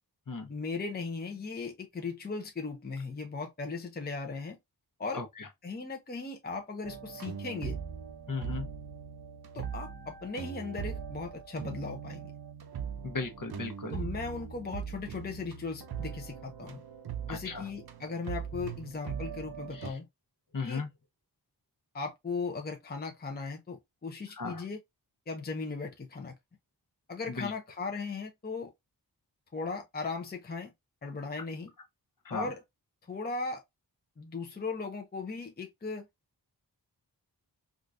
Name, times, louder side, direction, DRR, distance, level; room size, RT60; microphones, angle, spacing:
voice 1, 0.5-4.6 5.0-5.2 5.6-7.8 9.5-12.2 13.9-16.8 17.3-20.1 20.6-20.8 21.9-24.8 25.3-26.3 27.1-28.7 29.5-30.7 31.0-31.7 32.3-32.6 33.1-33.6 34.2-36.1, left 4 dB, 25° left, 0.6 m, -37 dB
voice 2, 5.1-5.4 8.3-8.7 13.0-14.0 17.3-17.6 19.7-19.9 20.5-20.9 24.4-24.6 27.4-27.5 32.2-32.5, left 4 dB, 50° left, 1.0 m, -36 dB
sound 1, 6.8-19.9, right 7 dB, 65° right, 0.6 m, -40 dB
3.7 x 2.4 x 2.5 m
wide cardioid pair, 60°, 41 cm